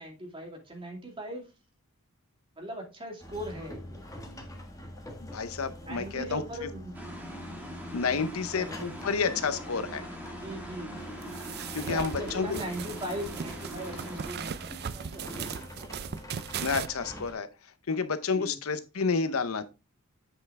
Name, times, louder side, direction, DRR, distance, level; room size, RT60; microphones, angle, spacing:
voice 1, 0.0-1.4 2.6-4.0 5.8-6.9 8.4-8.9 10.4-10.9 11.8-15.7 18.3-18.5, equal, 25° right, 2.4 m, -39 dB
sound 1, 3.2-17.3, equal, 15° left, 1.5 m, -45 dB
voice 2, 5.2-6.4 7.9-10.0 11.7-12.6 16.6-17.5 17.9-19.6, left 5 dB, 80° left, 0.8 m, -30 dB
sound 2, 6.9-14.3, equal, 10° right, 1.8 m, -42 dB
sound 3, 11.2-16.9, right 7 dB, 50° right, 0.4 m, -38 dB
8.0 x 5.7 x 3.5 m
head